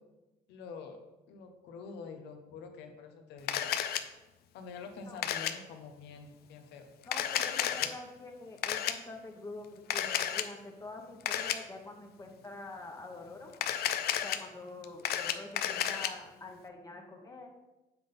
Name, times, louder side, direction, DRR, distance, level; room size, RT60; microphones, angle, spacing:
voice 1, 0.5-1.0 1.3-3.7 4.5-6.8 7.8-7.9, left 5 dB, 85° left, 6 dB, 1.0 m, -46 dB
Camera, 3.5-4.0 5.2-5.5 7.0-7.9 8.6-8.9 9.9-10.5 11.2-11.6 13.5-14.4 14.8-16.1, left 10 dB, 70° left, 0.6 m, -31 dB
voice 2, 7.1-13.5 13.9-17.5, left 2 dB, 20° left, 2 dB, 1.0 m, -46 dB
7.5 x 3.9 x 5.2 m, 1.0 s
cardioid pair, 110°, 17 cm